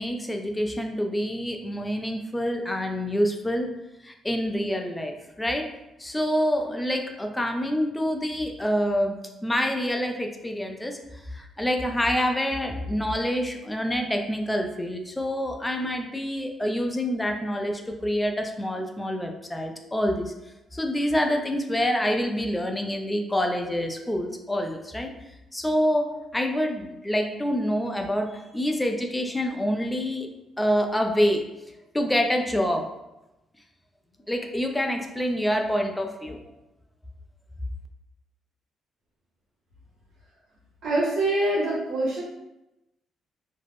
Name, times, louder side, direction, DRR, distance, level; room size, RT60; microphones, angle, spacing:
voice 1, 0.0-3.7 4.0-5.7 6.0-9.2 9.4-11.0 11.3-20.3 20.7-25.1 25.5-30.3 30.6-31.5 31.9-32.9 34.3-36.4, equal, 10° left, 3 dB, 0.4 m, -26 dB
voice 2, 40.8-42.2, right 1 dB, 75° right, -9 dB, 0.9 m, -24 dB
2.4 x 2.0 x 3.3 m, 0.93 s
cardioid pair, 90°, 0 cm